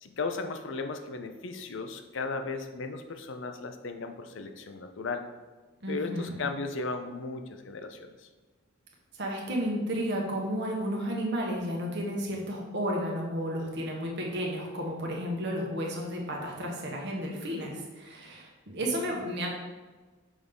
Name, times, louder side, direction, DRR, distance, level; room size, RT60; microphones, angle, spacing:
voice 1, 0.0-5.3 5.9-8.3, left 3 dB, 60° left, 6 dB, 0.6 m, -36 dB
voice 2, 5.8-6.4 9.1-19.5, equal, 55° right, 0 dB, 1.3 m, -32 dB
6.2 x 3.6 x 5.3 m, 1.3 s
head